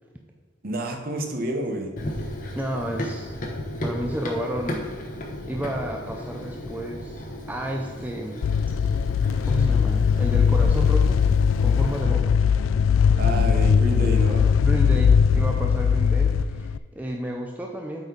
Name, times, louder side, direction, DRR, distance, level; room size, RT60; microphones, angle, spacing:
voice 1, 0.6-1.9 13.2-14.5, right 1 dB, 50° right, 3 dB, 1.1 m, -29 dB
Run, 2.0-12.0, equal, 40° left, 1.1 m, -34 dB
voice 2, 2.5-3.3 3.8-5.0 5.5-8.5 9.4-11.2 11.6-12.5 14.6-18.1, equal, 10° right, 1 dB, 0.6 m, -31 dB
sound 1, 8.4-16.8, left 6 dB, 80° left, 0.3 m, -20 dB
8.3 x 4.4 x 5.1 m, 1.6 s
head